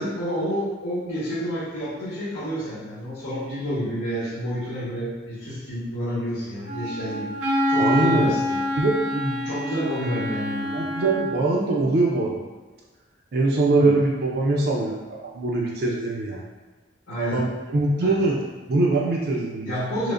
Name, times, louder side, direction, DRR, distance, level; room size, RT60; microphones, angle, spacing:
voice 1, 0.0-8.6 9.4-10.8 13.8-13.9 17.1-17.4 18.0-18.2 19.6-20.1, equal, 85° left, -11 dB, 1.2 m, -29 dB
Wind instrument woodwind instrument, 6.6-11.4, equal, 75° right, 0.8 m, -26 dB
voice 2, 7.8-8.4 8.8-9.5 10.7-12.4 13.3-16.4 17.2-18.4 18.7-19.7, right 2 dB, 50° right, -3 dB, 0.5 m, -23 dB
4.9 x 2.1 x 2.5 m, 1.3 s
head